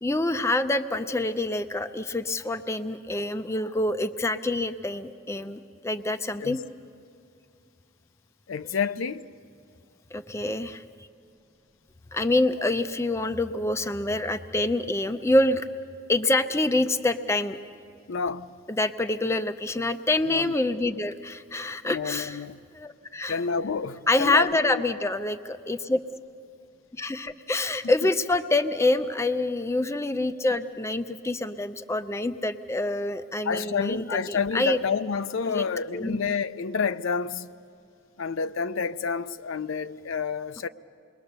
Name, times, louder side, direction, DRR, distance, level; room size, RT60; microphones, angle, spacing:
voice 1, 0.0-6.6 10.1-10.8 12.1-15.7 16.1-17.6 18.8-22.4 22.8-23.4 24.1-26.0 27.0-34.8 35.5-35.6 35.9-36.2, left 2 dB, 15° left, 0.5 m, -26 dB
voice 2, 8.5-9.3 18.1-18.6 20.2-20.5 21.8-22.6 23.3-24.8 33.4-37.5 38.2-40.7, left 5 dB, 70° left, 0.5 m, -29 dB
28.0 x 21.5 x 6.8 m
head